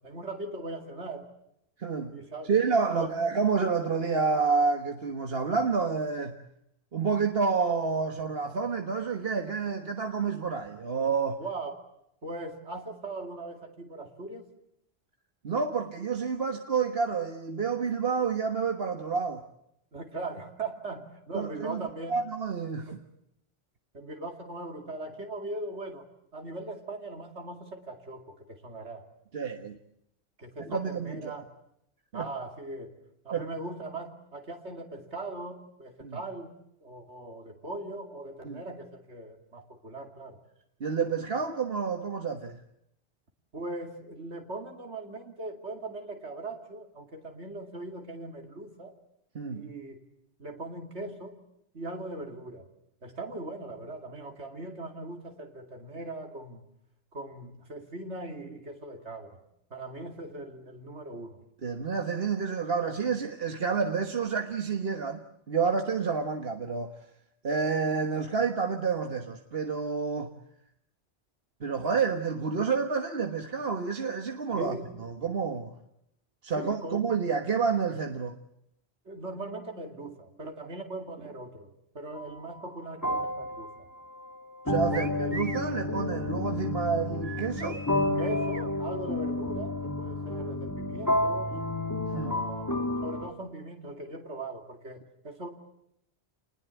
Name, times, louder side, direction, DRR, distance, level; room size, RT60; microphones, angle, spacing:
voice 1, 0.0-1.3 2.1-2.5 2.9-3.1 11.4-11.8 12.2-14.5 19.9-22.2 22.9-23.0 23.9-26.1 26.3-29.1 30.4-31.5 32.1-33.0 33.2-36.6 36.8-40.4 43.5-48.9 49.5-50.0 50.4-51.4 51.7-52.7 53.0-56.6 57.1-59.4 59.7-61.4 74.5-74.9 76.5-77.1 79.0-83.7 84.9-85.4 88.2-91.5 92.1-92.7 93.0-95.5, right 2 dB, 75° right, 3 dB, 3.0 m, -40 dB
voice 2, 1.8-2.2 2.5-6.4 6.9-11.4 15.4-19.4 21.3-21.8 22.1-23.0 29.3-29.8 30.6-31.4 32.1-32.3 33.3-33.5 36.0-36.2 38.4-38.6 40.8-42.6 49.3-49.7 61.6-66.9 67.4-70.3 71.6-75.7 76.4-78.3 84.7-87.8 92.1-92.4, right 5 dB, 60° right, 5 dB, 1.7 m, -29 dB
sound 1, 82.2-82.4 83.0-93.3, left 2 dB, 15° left, 1.8 m, -31 dB
sound 2, 84.9-85.7 87.2-88.7, right 4 dB, 35° right, 1.1 m, -41 dB
29.5 x 20.5 x 8.3 m, 0.78 s
omnidirectional pair, 1.2 m